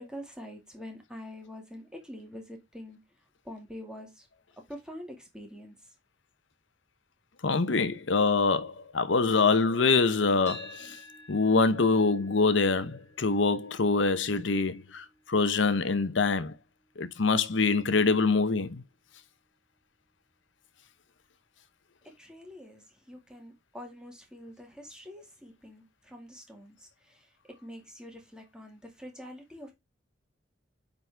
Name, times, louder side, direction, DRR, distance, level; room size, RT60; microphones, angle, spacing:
voice 1, 0.0-3.0 3.4-4.3 4.7-5.7 22.2-29.7, equal, 5° right, 1.9 m, -45 dB
voice 2, 7.4-11.0 11.3-16.5 17.0-18.8, left 4 dB, 75° left, 0.8 m, -25 dB
sound 1, 10.5-18.6, left 2 dB, 15° left, 3.0 m, -53 dB
9.0 x 4.1 x 3.4 m
head